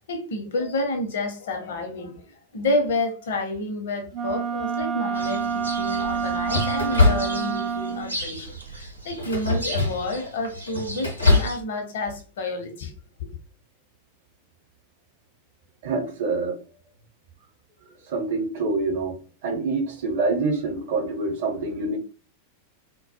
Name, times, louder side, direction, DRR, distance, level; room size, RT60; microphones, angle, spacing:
voice 1, 0.0-12.9 13.2-13.3, left 2 dB, 60° left, 0.6 m, -29 dB
Wind instrument woodwind instrument, 4.1-8.2, right 6 dB, 35° right, 0.3 m, -27 dB
sound 1, 5.1-11.6, right 1 dB, 90° right, 0.7 m, -37 dB
sound 2, 5.2-5.6 6.5-7.7 8.1-8.5 9.1-10.2 10.5-11.6, left 3 dB, 85° left, 0.9 m, -23 dB
voice 2, 15.8-16.6 18.1-19.1 19.4-22.0, right 3 dB, 55° right, 0.7 m, -26 dB
2.2 x 2.0 x 2.8 m
figure-of-eight pair, 90°, 0 cm